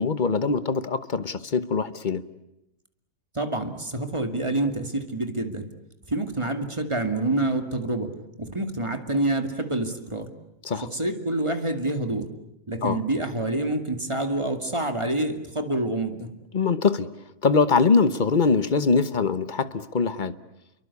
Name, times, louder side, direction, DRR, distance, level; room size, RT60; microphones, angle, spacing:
voice 1, 0.0-2.2 10.6-10.9 12.8-13.0 16.5-17.1 17.4-20.4, left 4 dB, 35° left, 14 dB, 1.1 m, -23 dB
voice 2, 3.3-5.6 6.1-8.1 8.4-10.3 10.8-12.3 12.7-16.3, right 2 dB, 20° right, 7 dB, 2.3 m, -27 dB
29.5 x 23.5 x 8.4 m, 0.88 s
omnidirectional pair, 1.7 m